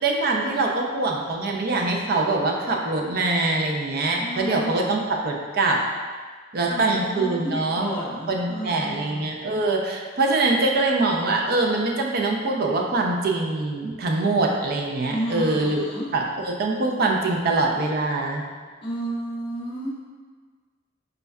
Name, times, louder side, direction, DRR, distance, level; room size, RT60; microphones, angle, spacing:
voice 1, 0.0-5.8 6.5-7.9 8.3-15.8 16.1-18.4, right 2 dB, 55° right, 1 dB, 0.4 m, -23 dB
voice 2, 4.2-4.9 6.7-6.9 7.1-9.2 15.1-16.1 18.8-19.9, equal, 25° left, -6 dB, 0.4 m, -31 dB
5.1 x 2.2 x 2.3 m, 1.5 s
head